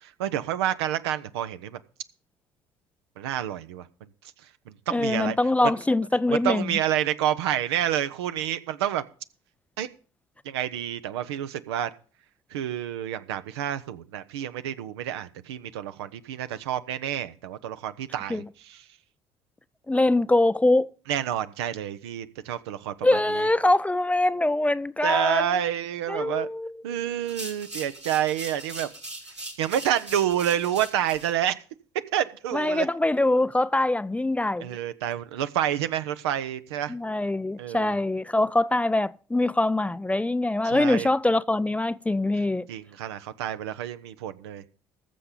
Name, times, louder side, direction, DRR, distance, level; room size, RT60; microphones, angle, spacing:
voice 1, 0.0-1.8 3.2-3.9 4.7-5.4 6.3-9.0 9.8-9.9 10.4-11.9 12.5-18.8 21.1-23.5 25.0-26.5 26.8-28.9 29.6-31.6 32.1-32.9 34.6-36.9 37.6-37.9 40.6-41.1 42.7-44.6, right 11 dB, 70° right, 0.7 m, -28 dB
voice 2, 4.9-6.7 18.3-18.5 19.9-20.9 23.0-25.5 26.1-26.7 32.5-34.7 36.9-42.7, left 2 dB, 10° left, 0.4 m, -23 dB
sound 1, 27.2-31.3, right 1 dB, 90° right, 1.9 m, -40 dB
20.0 x 6.8 x 3.8 m
figure-of-eight pair, 55°, 14 cm